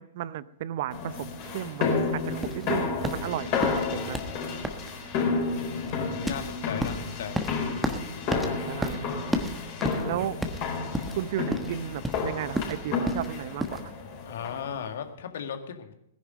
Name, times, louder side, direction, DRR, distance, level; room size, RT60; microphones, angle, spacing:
voice 1, 0.0-4.2 8.7-9.1 10.0-10.4 11.2-13.8, right 12 dB, 50° right, 19 dB, 0.6 m, -34 dB
sound 1, 0.9-14.8, left 4 dB, 40° left, 4.3 m, -31 dB
sound 2, 2.4-13.8, equal, 5° right, 1.3 m, -33 dB
voice 2, 5.6-7.4 14.3-15.9, left 8 dB, 60° left, 6 dB, 1.8 m, -37 dB
18.0 x 10.5 x 5.3 m, 0.77 s
figure-of-eight pair, 105°, 0 cm